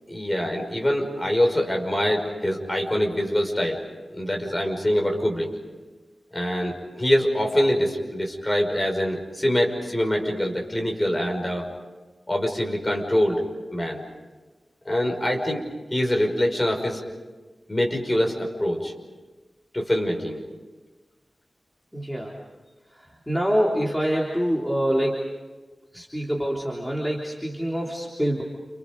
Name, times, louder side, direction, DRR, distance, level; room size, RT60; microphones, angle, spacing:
voice 1, 0.1-3.8 4.1-5.5 6.3-11.7 12.3-13.4 13.7-14.0 14.8-15.7 15.9-17.0 17.7-18.9 19.7-20.4, equal, 15° left, 2 dB, 5.6 m, -24 dB
voice 2, 21.9-22.4 22.9-25.3 25.9-28.4, equal, ahead, -4 dB, 3.5 m, -25 dB
30.0 x 30.0 x 5.4 m, 1.3 s
wide cardioid pair, 105°, 0 cm